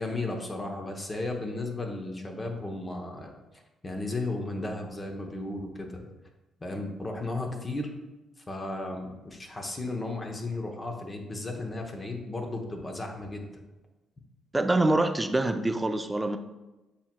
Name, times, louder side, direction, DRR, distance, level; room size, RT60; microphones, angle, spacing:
voice 1, 0.0-3.3 3.8-6.1 6.6-7.9 8.5-13.5, left 2 dB, 30° left, 3 dB, 0.8 m, -34 dB
voice 2, 14.5-16.4, right 2 dB, 15° right, 8 dB, 0.4 m, -25 dB
8.2 x 2.9 x 2.2 m, 1.0 s
supercardioid pair, 60°, 0 cm